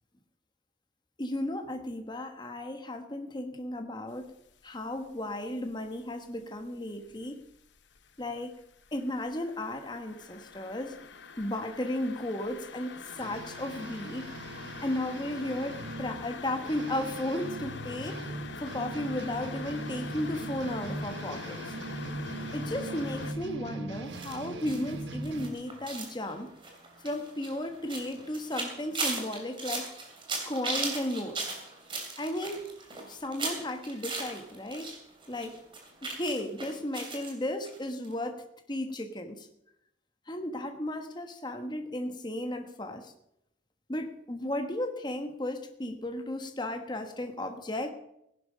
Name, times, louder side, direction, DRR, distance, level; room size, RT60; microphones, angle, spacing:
voice 1, 1.2-4.3 4.6-7.4 8.2-8.5 8.9-10.9 11.4-14.3 14.8-18.2 18.6-21.6 22.5-26.5 27.0-29.9 30.5-31.6 32.2-32.7 33.1-34.9 35.3-35.6 36.0-38.4 38.7-39.5 40.3-43.1 43.9-47.9, left 1 dB, 25° left, 6 dB, 1.2 m, -34 dB
sound 1, 4.3-4.7 5.0-6.6 6.9-23.3, left 4 dB, 85° left, 1.0 m, -44 dB
sound 2, 13.2-25.5, right 2 dB, 80° right, 1.2 m, -40 dB
sound 3, 24.1-35.0 35.2-37.3 37.6-37.8 38.0-38.1, right 3 dB, 30° right, 3.0 m, -37 dB
17.0 x 11.0 x 5.1 m, 0.80 s
head